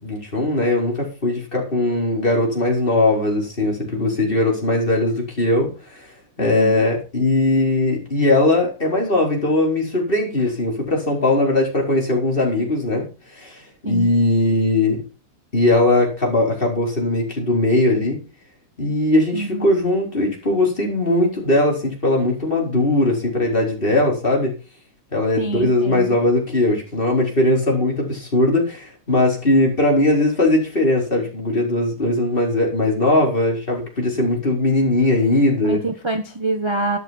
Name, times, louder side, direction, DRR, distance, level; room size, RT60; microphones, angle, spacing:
voice 1, 0.0-6.1 6.4-13.6 13.9-15.0 15.5-18.2 18.8-24.5 25.1-35.8, left 2 dB, 30° left, -1 dB, 5.1 m, -19 dB
voice 2, 6.4-6.9 13.8-14.1 19.3-19.7 25.4-26.2 35.6-37.0, right 2 dB, 20° right, 5 dB, 1.3 m, -26 dB
12.5 x 11.0 x 4.5 m, 0.32 s
omnidirectional pair, 1.7 m